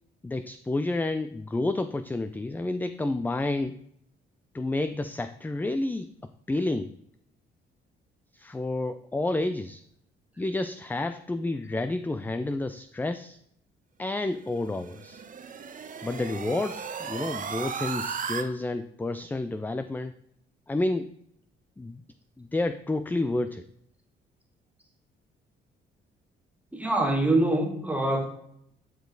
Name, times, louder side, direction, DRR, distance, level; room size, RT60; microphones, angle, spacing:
voice 1, 0.2-3.8 4.5-6.1 6.5-6.9 8.3-9.8 10.4-13.4 14.0-15.2 16.0-20.1 20.7-21.1 21.8-22.0 22.4-23.6, left 2 dB, 10° left, 12 dB, 0.3 m, -30 dB
sound 1, 14.5-18.4, right 6 dB, 40° right, 0.9 m, -36 dB
voice 2, 26.7-28.2, right 2 dB, 5° right, 1 dB, 1.3 m, -24 dB
10.0 x 5.0 x 3.9 m, 0.73 s
cardioid pair, 90°, 20 cm